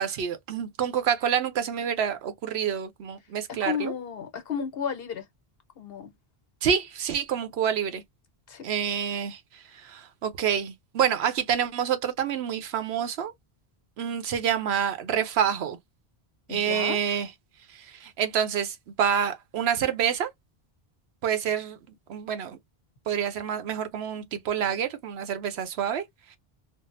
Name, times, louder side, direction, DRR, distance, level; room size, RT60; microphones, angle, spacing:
voice 1, 0.0-3.9 6.6-8.0 8.6-13.3 14.0-15.8 16.5-17.3 17.7-20.3 21.2-21.8 22.1-22.6 23.1-26.0 26.3-26.4, right 8 dB, 85° right, 0.9 m, -27 dB
voice 2, 3.5-5.3 5.8-6.1 8.5-8.6 16.5-17.0, left 7 dB, 70° left, 1.0 m, -33 dB
3.6 x 2.0 x 2.5 m
omnidirectional pair, 1.0 m